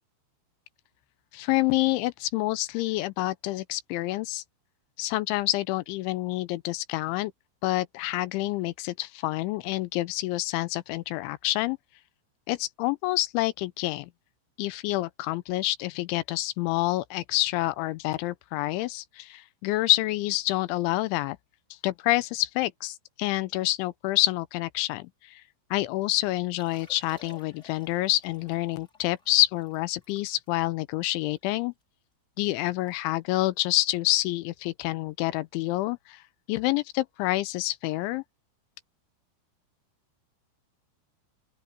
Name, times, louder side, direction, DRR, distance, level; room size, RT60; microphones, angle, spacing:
voice 1, 1.3-4.4 5.0-7.3 7.6-11.8 12.5-14.1 14.6-21.4 21.8-25.4 25.7-31.7 32.4-36.2 36.5-38.2, left 18 dB, 85° left, 3.0 m, -27 dB
Liquid, 26.4-31.8 32.3-32.4 32.6-33.0 33.2-33.5 34.1-34.3 35.8-35.9, left 3 dB, 15° left, 4.1 m, -56 dB
open air
omnidirectional pair, 5.6 m